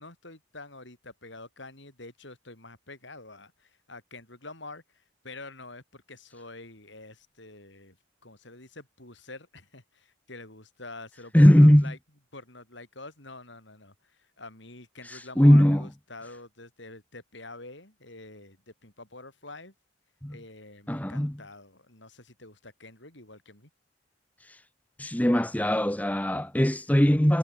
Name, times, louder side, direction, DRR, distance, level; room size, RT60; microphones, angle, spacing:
voice 1, 0.0-8.0 8.2-12.0 12.3-19.7 20.3-23.7, left 2 dB, 65° left, 7.4 m, -46 dB
voice 2, 11.3-11.9 15.0-15.8 20.2-20.4 20.9-21.3 24.5-24.6 25.0-27.4, equal, 10° left, 0.8 m, -20 dB
head